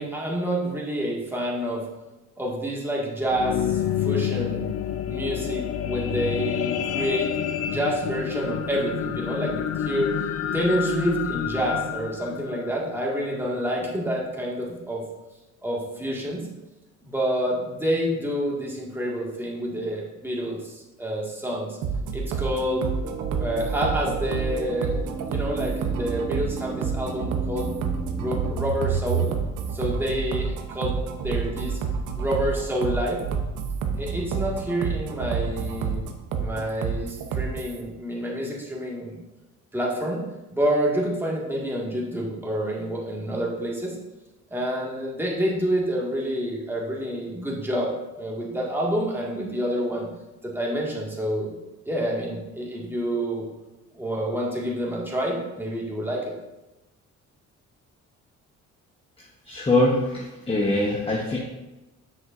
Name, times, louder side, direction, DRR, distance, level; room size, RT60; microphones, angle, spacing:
voice 1, 0.0-1.8 2.4-4.7 5.1-7.3 7.6-10.1 10.5-15.0 15.6-16.4 17.0-21.8 22.1-22.8 23.4-27.7 28.1-29.4 29.7-31.8 32.2-33.2 34.0-36.0 36.3-39.2 39.7-40.2 40.5-44.0 44.5-47.9 48.2-50.1 50.4-51.5 51.9-53.4 53.9-56.2, equal, 5° right, -4 dB, 1.8 m, -28 dB
sound 1, 3.0-13.5 14.1-14.2, left 9 dB, 55° left, 0.5 m, -29 dB
sound 2, 21.8-37.8, right 6 dB, 85° right, 0.8 m, -29 dB
sound 3, 22.6-28.5, right 4 dB, 35° right, 0.8 m, -35 dB
voice 2, 59.5-61.4, left 2 dB, 20° left, -2 dB, 1.0 m, -23 dB
7.8 x 6.1 x 2.5 m, 1.0 s
cardioid pair, 90°, 30 cm